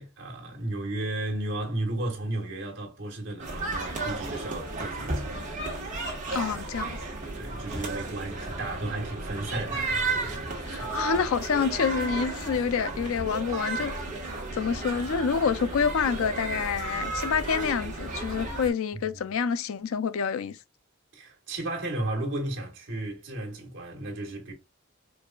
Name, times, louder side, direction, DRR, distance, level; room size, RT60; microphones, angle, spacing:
voice 1, 0.0-5.4 7.4-10.9 21.1-24.5, right 2 dB, 60° right, 1.4 m, -34 dB
sound 1, 3.4-18.7, right 3 dB, 35° right, 1.2 m, -33 dB
voice 2, 6.3-7.0 10.7-13.9 14.5-20.6, left 6 dB, 80° left, 0.4 m, -27 dB
4.6 x 2.4 x 2.3 m
head